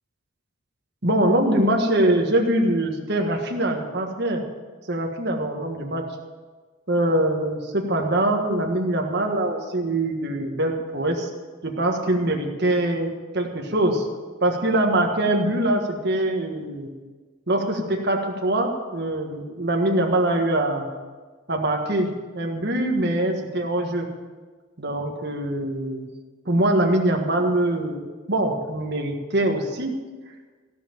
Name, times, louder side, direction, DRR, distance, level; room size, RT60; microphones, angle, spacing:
voice 1, 1.0-4.4 4.9-6.1 6.9-11.3 11.6-14.1 14.4-16.9 17.5-20.9 21.5-24.1 24.8-26.1 26.4-28.0 28.3-29.9, right 1 dB, 55° right, 1 dB, 1.6 m, -23 dB
15.5 x 5.8 x 9.0 m, 1.4 s
head